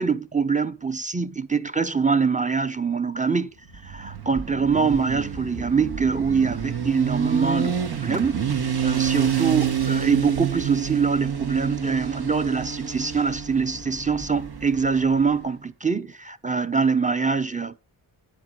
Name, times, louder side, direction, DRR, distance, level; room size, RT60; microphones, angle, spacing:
voice 1, 0.0-3.5 3.8-8.4 8.8-17.8, right 5 dB, 15° right, 0.8 m, -24 dB
Motorcycle, 3.7-15.4, right 8 dB, 55° right, 1.2 m, -28 dB
10.0 x 4.8 x 7.5 m
cardioid pair, 40°, 48 cm